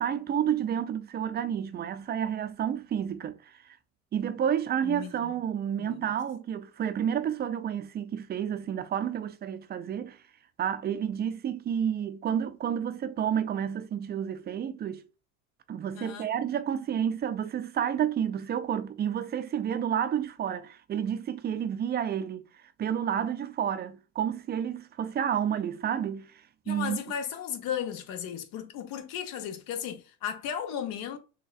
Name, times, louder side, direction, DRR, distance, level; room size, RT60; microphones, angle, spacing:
voice 1, 0.0-3.4 4.1-10.2 10.6-15.0 15.7-22.5 22.8-26.3 26.7-27.0, right 9 dB, 25° right, 0.5 m, -30 dB
voice 2, 4.8-5.3 5.8-6.0 15.9-16.3 26.7-31.2, left 8 dB, 50° left, 1.0 m, -35 dB
6.1 x 2.3 x 2.4 m
hypercardioid pair, 80°, 42 cm